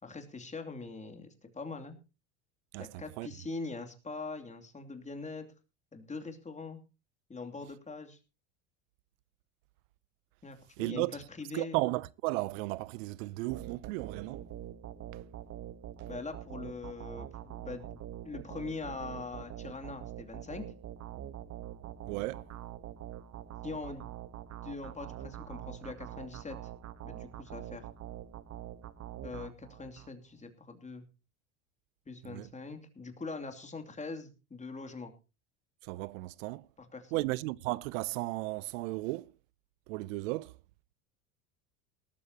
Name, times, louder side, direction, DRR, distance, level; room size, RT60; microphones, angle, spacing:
voice 1, 0.0-2.0 2.8-5.5 5.9-6.8 7.3-8.2 10.4-11.8 16.1-20.6 23.6-24.0 24.6-26.6 27.0-27.9 29.2-31.1 32.1-35.1 36.8-37.3, left 3 dB, 15° left, 2.8 m, -42 dB
voice 2, 2.7-3.3 10.8-11.2 11.5-14.5 15.1-15.2 16.0-16.1 22.1-22.5 32.2-32.5 35.8-36.7 37.1-39.3 39.9-40.6, right 21 dB, 75° right, 0.6 m, -35 dB
sound 1, 13.5-30.1, right 11 dB, 40° right, 1.3 m, -44 dB
18.5 x 13.5 x 2.9 m
supercardioid pair, 100°, 40 cm